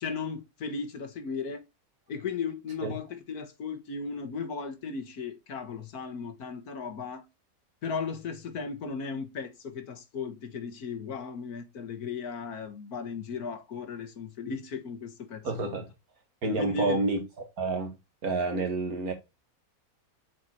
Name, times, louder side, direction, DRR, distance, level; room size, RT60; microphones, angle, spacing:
voice 1, 0.0-1.6 2.1-7.2 7.8-15.7 16.6-17.0, left 5 dB, 85° left, 1.8 m, -36 dB
voice 2, 15.4-15.9 16.4-17.2 17.6-17.9 18.2-19.1, right 2 dB, 80° right, 2.3 m, -28 dB
7.2 x 4.6 x 4.3 m
omnidirectional pair, 1.5 m